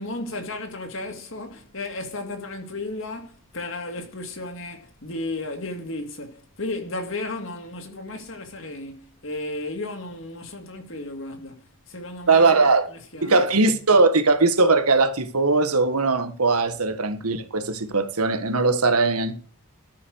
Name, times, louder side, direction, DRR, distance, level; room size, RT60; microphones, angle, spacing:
voice 1, 0.0-13.5, left 2 dB, 55° left, 2.6 m, -34 dB
voice 2, 12.3-12.9 13.2-19.4, right 3 dB, 85° right, 1.7 m, -20 dB
14.0 x 5.9 x 6.4 m
head